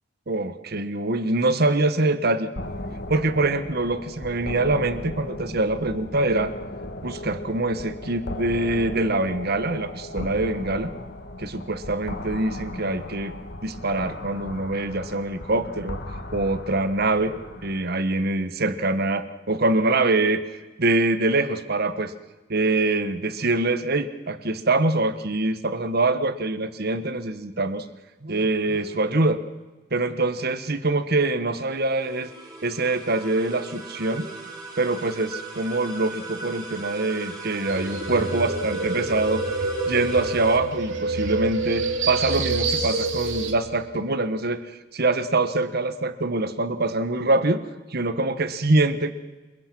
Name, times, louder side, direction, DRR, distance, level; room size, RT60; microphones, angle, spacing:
voice 1, 0.3-2.5 3.1-6.5 7.0-10.9 11.4-13.3 13.6-17.4 17.6-22.1 22.5-27.8 28.2-29.4 29.9-32.3 32.6-34.3 34.8-39.4 39.9-44.7 44.9-47.7 47.9-49.1, right 2 dB, 55° right, 11 dB, 1.3 m, -24 dB
sound 1, 2.6-17.8, left 1 dB, 60° left, 2.0 m, -37 dB
sound 2, 31.5-40.6, right 3 dB, 20° right, 6.8 m, -38 dB
sound 3, 37.7-43.5, right 3 dB, 75° right, 2.9 m, -27 dB
27.5 x 22.0 x 6.1 m, 1.2 s
head